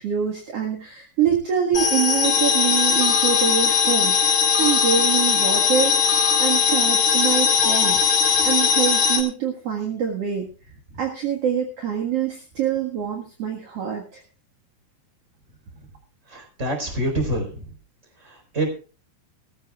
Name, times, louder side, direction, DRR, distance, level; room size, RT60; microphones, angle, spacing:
voice 1, 0.0-8.0 8.4-10.5 11.0-14.2, right 8 dB, 50° right, 1 dB, 2.0 m, -25 dB
sound 1, 1.7-9.2, left 7 dB, 45° left, 3.4 m, -19 dB
voice 2, 16.3-17.7 18.2-18.7, right 1 dB, 15° right, 4 dB, 4.1 m, -26 dB
19.5 x 14.0 x 2.4 m, 0.35 s
omnidirectional pair, 4.9 m